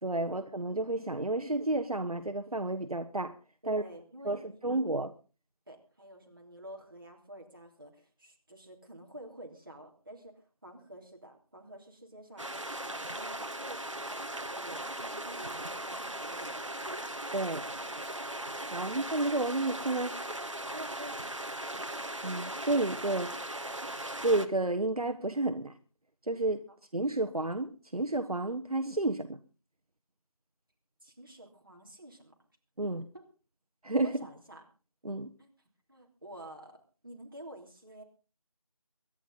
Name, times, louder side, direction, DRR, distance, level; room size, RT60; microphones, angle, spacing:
voice 1, 0.0-3.3 3.6-3.8 4.2-5.1 17.3-17.6 18.7-20.1 22.2-23.3 24.2-25.8 26.2-26.6 26.9-29.4 32.8-33.0 33.8-34.2 35.0-35.3, right 2 dB, 80° right, 1.3 m, -31 dB
voice 2, 3.6-4.8 5.7-12.6 12.8-16.6 20.7-21.2 26.7-26.8 31.0-32.3 33.1-33.2 34.0-34.6 35.4-35.5 35.9-36.8 37.0-38.0, right 1 dB, 35° right, 3.3 m, -49 dB
sound 1, 12.4-24.5, right 1 dB, 55° right, 1.6 m, -38 dB
23.5 x 10.5 x 4.0 m
figure-of-eight pair, 180°, 19 cm